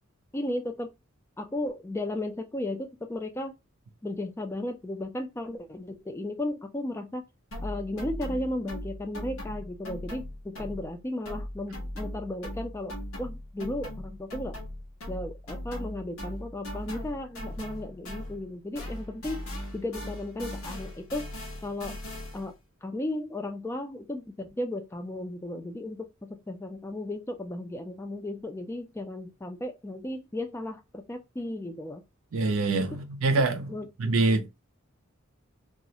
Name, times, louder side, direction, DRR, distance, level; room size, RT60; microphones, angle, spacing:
voice 1, 0.3-0.9 1.4-3.5 4.0-7.2 7.6-12.9 13.2-14.5 15.1-19.4 19.7-21.3 21.6-22.0 22.3-22.5 22.8-32.0 33.7-34.1, left 1 dB, 10° left, 0.3 m, -35 dB
sound 1, 7.5-11.0 11.2-18.5 18.7-22.5, left 1 dB, 80° left, 0.9 m, -39 dB
voice 2, 32.3-34.7, right 3 dB, 75° right, 0.5 m, -26 dB
2.3 x 2.0 x 2.7 m
head